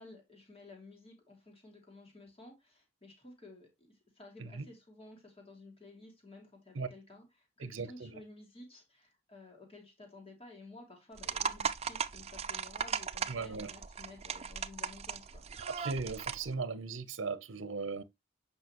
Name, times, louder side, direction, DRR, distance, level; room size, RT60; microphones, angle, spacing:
voice 1, 0.0-3.7 4.1-15.4, left 2 dB, 30° left, 2.6 m, -54 dB
voice 2, 7.6-8.2 13.3-13.7 15.7-18.0, right 4 dB, 80° right, 0.7 m, -38 dB
sound 1, 11.2-16.5, right 6 dB, 35° right, 0.5 m, -38 dB
8.1 x 5.5 x 2.9 m
head